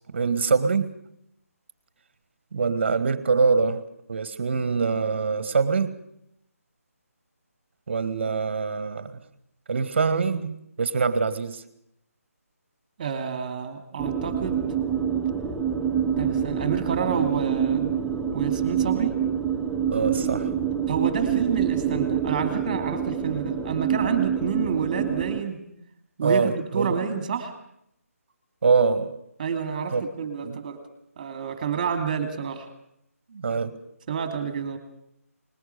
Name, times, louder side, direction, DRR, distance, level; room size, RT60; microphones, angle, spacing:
voice 1, 0.1-0.9 2.5-5.9 7.9-9.2 9.7-11.6 19.9-20.5 26.2-27.1 28.6-29.2 29.9-30.0 30.4-30.6 33.3-33.8, right 4 dB, 45° right, 14 dB, 1.8 m, -24 dB
voice 2, 13.0-14.6 15.9-17.9 18.3-19.1 20.9-25.6 26.2-27.5 29.4-30.8 31.2-32.7 34.1-34.8, right 7 dB, 30° right, 7 dB, 2.6 m, -29 dB
sound 1, 14.0-25.4, right 8 dB, 5° right, 0.7 m, -26 dB
20.5 x 20.5 x 6.9 m, 0.74 s
figure-of-eight pair, 155°, 8 cm